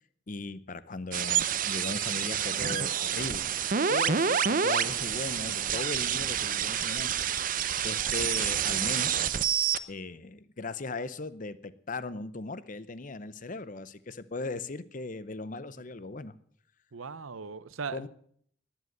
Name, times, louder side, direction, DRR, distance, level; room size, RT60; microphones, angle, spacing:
voice 1, 0.3-3.5 3.9-9.3 9.9-16.3 17.9-18.1, left 3 dB, 40° left, 15 dB, 0.7 m, -38 dB
sound 1, 1.1-9.8, right 8 dB, 40° right, 0.6 m, -28 dB
voice 2, 16.9-18.1, right 5 dB, 90° right, 16 dB, 0.8 m, -38 dB
19.0 x 7.8 x 7.9 m, 0.63 s
head